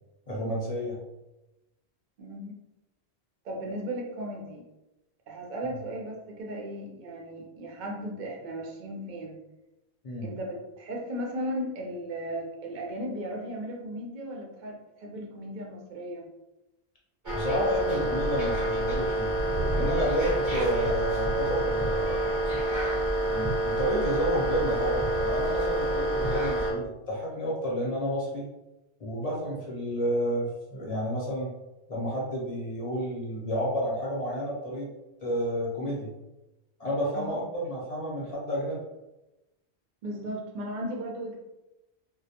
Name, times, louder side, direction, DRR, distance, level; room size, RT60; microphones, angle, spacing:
voice 1, 0.3-1.0 10.0-10.3 17.3-19.3 19.7-22.3 23.2-28.4 29.0-31.5 31.9-34.9 35.2-36.1 36.8-38.8, equal, 45° left, -4 dB, 0.6 m, -30 dB
voice 2, 2.2-2.5 3.4-4.6 5.3-9.4 10.2-16.3 37.1-37.4 40.0-41.4, right 1 dB, 55° right, 0 dB, 0.6 m, -36 dB
sound 1, 17.2-26.7, right 1 dB, 20° right, 0.7 m, -27 dB
2.2 x 2.1 x 2.7 m, 0.98 s
omnidirectional pair, 1.1 m